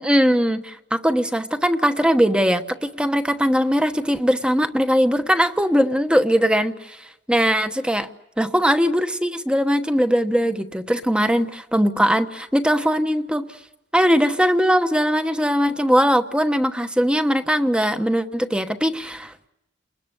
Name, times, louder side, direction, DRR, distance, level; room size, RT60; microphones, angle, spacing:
voice 1, 0.0-7.0 7.3-8.1 8.4-13.5 13.9-19.5, equal, 5° right, 9 dB, 1.1 m, -20 dB
30.0 x 20.5 x 8.1 m, 0.91 s
head